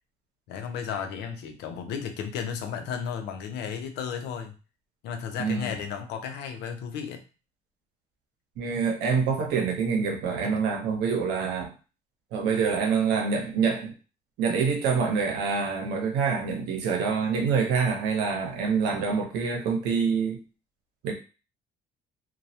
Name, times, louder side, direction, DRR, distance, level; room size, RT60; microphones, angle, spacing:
voice 1, 0.5-4.5 5.0-7.2 10.4-10.6, left 7 dB, 85° left, 6 dB, 0.5 m, -34 dB
voice 2, 5.4-5.8 8.6-11.7 12.3-13.9 14.4-20.4 21.0-21.1, right 5 dB, 85° right, 2 dB, 0.7 m, -26 dB
2.2 x 2.0 x 2.7 m, 0.33 s
cardioid pair, 110°, 17 cm